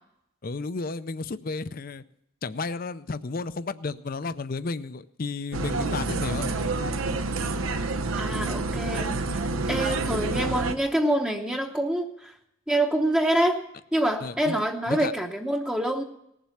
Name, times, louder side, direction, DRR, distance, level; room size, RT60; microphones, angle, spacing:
voice 1, 0.4-2.0 2.4-6.5 14.2-14.6 14.9-15.1, left 3 dB, 45° left, 14 dB, 0.5 m, -32 dB
sound 1, 5.5-10.7, right 3 dB, 90° right, 0.8 m, -28 dB
voice 2, 8.2-12.4 12.7-13.6 13.9-16.0, right 1 dB, 5° right, 1 dB, 0.8 m, -26 dB
18.5 x 7.4 x 7.1 m, 0.79 s
head